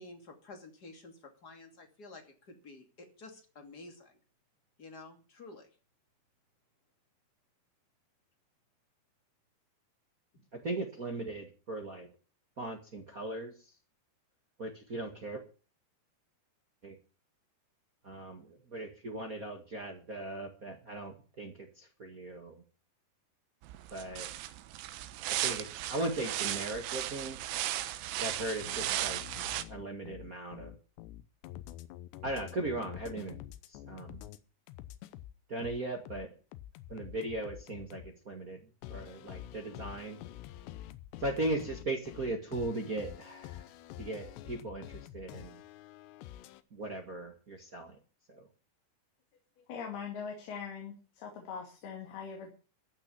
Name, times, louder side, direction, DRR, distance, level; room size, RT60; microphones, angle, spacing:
voice 1, 0.0-4.2 4.8-5.7 10.3-10.4, left 2 dB, 30° left, 4 dB, 2.4 m, -51 dB
voice 2, 10.5-12.1 12.6-13.5 14.6-15.4 16.8-16.9 18.0-22.6 23.9-24.3 25.3-27.4 28.2-29.2 29.7-30.7 32.2-33.4 33.7-34.2 35.5-36.3 36.9-38.6 38.9-40.2 41.2-43.7 44.0-45.6 46.7-47.9 48.3-48.5, right 2 dB, 75° right, 2 dB, 0.8 m, -38 dB
sound 1, 23.6-29.6, right 14 dB, 90° right, 3.1 m, -36 dB
sound 2, 28.6-34.4 34.7-38.1 38.8-46.6, left 13 dB, 85° left, 3.0 m, -47 dB
voice 3, 49.7-52.5, left 6 dB, 70° left, 1 dB, 4.2 m, -41 dB
14.5 x 6.3 x 9.7 m, 0.37 s
omnidirectional pair, 4.8 m